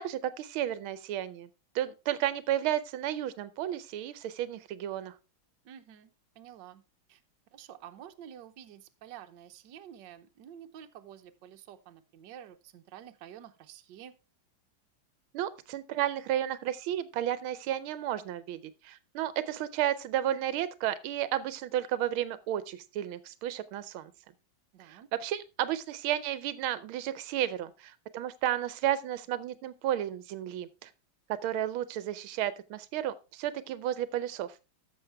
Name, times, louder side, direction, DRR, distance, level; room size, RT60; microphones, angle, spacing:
voice 1, 0.0-1.5 1.7-5.1 15.3-24.1 24.8-30.9 31.3-34.6, right 12 dB, 85° right, 15 dB, 1.5 m, -32 dB
voice 2, 5.6-6.8 7.1-7.2 7.5-14.1 24.7-25.1, right 10 dB, 65° right, 7 dB, 1.3 m, -49 dB
13.5 x 6.3 x 3.4 m, 0.29 s
omnidirectional pair, 2.2 m